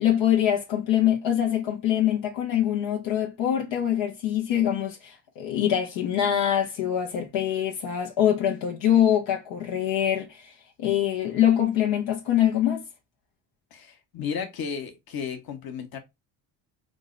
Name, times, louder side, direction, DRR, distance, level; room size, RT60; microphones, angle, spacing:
voice 1, 0.0-10.5 10.8-12.8, left 10 dB, 75° left, 0.9 m, -24 dB
voice 2, 13.7-16.0, left 6 dB, 50° left, 1.2 m, -34 dB
3.7 x 2.1 x 3.8 m
supercardioid pair, 70°, 45 cm